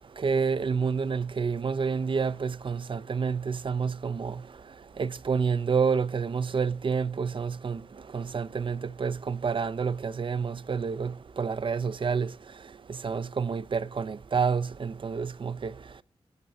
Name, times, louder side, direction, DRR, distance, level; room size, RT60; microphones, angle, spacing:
voice 1, 0.2-4.3 5.0-7.8 8.1-12.3 13.0-15.7, right 5 dB, 50° right, 0.5 m, -28 dB
20.0 x 7.8 x 4.1 m
cardioid pair, 70°, 11 cm